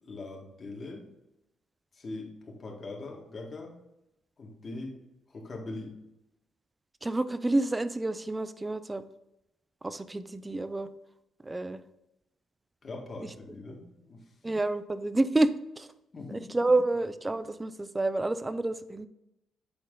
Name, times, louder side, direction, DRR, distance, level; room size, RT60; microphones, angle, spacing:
voice 1, 0.0-1.1 1.9-3.7 4.4-4.9 5.3-5.9 12.8-14.2 16.1-16.8, left 2 dB, 40° left, 0 dB, 1.9 m, -41 dB
voice 2, 7.0-9.0 9.8-10.9 11.4-11.8 14.4-15.5 15.8-15.9 16.3-19.1, right 2 dB, 15° right, 13 dB, 0.4 m, -28 dB
8.6 x 4.1 x 3.8 m, 0.88 s
cardioid pair, 90°, 0 cm